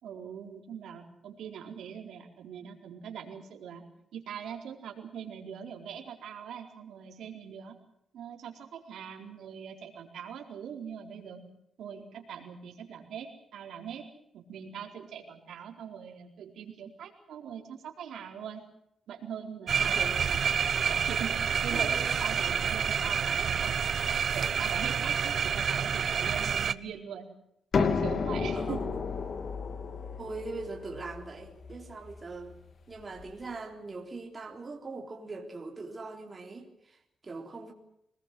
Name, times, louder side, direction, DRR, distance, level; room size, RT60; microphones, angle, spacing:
voice 1, 0.0-3.8 4.1-7.8 8.1-11.4 11.8-14.1 14.3-18.6 19.1-20.0 20.9-23.7 24.3-27.3 27.8-28.8, right 8 dB, 85° right, 2 dB, 4.3 m, -42 dB
sound 1, 19.7-26.7, right 7 dB, 55° right, 0.9 m, -28 dB
voice 2, 19.8-20.2 21.7-21.9 22.5-22.6 28.5-28.8 30.2-32.5 32.9-37.7, right 3 dB, 25° right, 1 dB, 3.7 m, -41 dB
sound 2, 27.7-33.3, left 5 dB, 50° left, 2.1 m, -33 dB
25.0 x 20.5 x 7.8 m, 0.77 s
wide cardioid pair, 140°, 0 cm